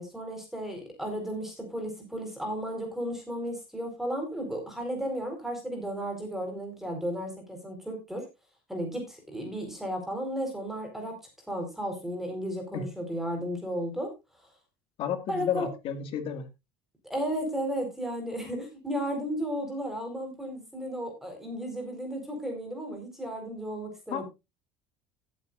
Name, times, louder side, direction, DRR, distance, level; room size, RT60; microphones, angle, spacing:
voice 1, 0.0-8.3 8.7-11.2 11.5-14.1 15.3-15.7 17.1-24.2, equal, 5° right, 3 dB, 4.2 m, -34 dB
voice 2, 15.0-16.5 24.1-24.2, left 9 dB, 55° left, 8 dB, 2.1 m, -32 dB
16.5 x 8.6 x 2.5 m, 0.24 s
supercardioid pair, 115°, 11 cm